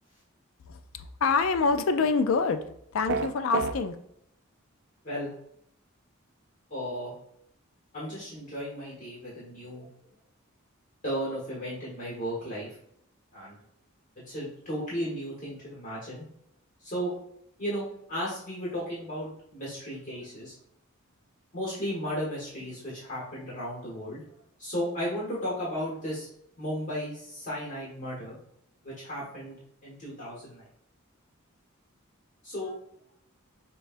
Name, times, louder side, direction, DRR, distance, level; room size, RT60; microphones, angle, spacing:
voice 1, 0.7-2.6 2.9-4.0, left 4 dB, 65° left, 9 dB, 0.4 m, -26 dB
sound 1, 3.1-3.7, right 5 dB, 55° right, 0.3 m, -27 dB
voice 2, 6.7-7.1 7.9-9.9 11.0-12.7 13.3-13.6 14.3-16.2 16.8-17.1 17.6-20.5 21.5-24.2 24.6-26.3 26.6-28.4 28.8-29.6 29.8-30.7 32.4-32.8, equal, 40° left, -6 dB, 1.3 m, -34 dB
6.3 x 2.3 x 2.5 m, 0.72 s
head